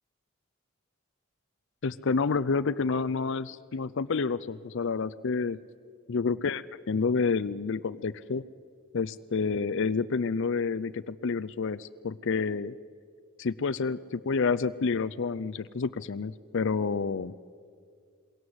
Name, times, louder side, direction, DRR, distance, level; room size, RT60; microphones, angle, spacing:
voice 1, 1.8-5.6 6.1-8.4 8.9-12.7 13.4-17.3, left 4 dB, 60° left, 13 dB, 0.5 m, -29 dB
27.5 x 21.5 x 7.9 m, 2.2 s
head